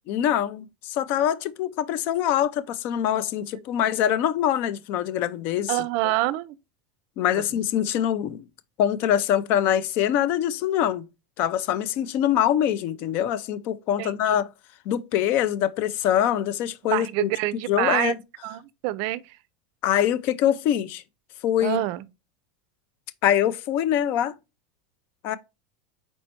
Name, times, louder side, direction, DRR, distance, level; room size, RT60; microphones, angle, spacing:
voice 1, 0.1-5.8 7.2-8.5 8.8-11.0 11.4-14.5 14.9-17.3 17.7-18.2 19.8-21.0 21.4-21.8 23.2-24.3 25.2-25.4, left 10 dB, 45° left, 0.4 m, -24 dB
voice 2, 5.7-6.6 7.3-7.4 14.0-14.3 16.9-18.1 18.4-19.2 21.6-22.0, right 18 dB, 55° right, 0.4 m, -26 dB
4.4 x 4.3 x 2.8 m
supercardioid pair, 150°, 5 cm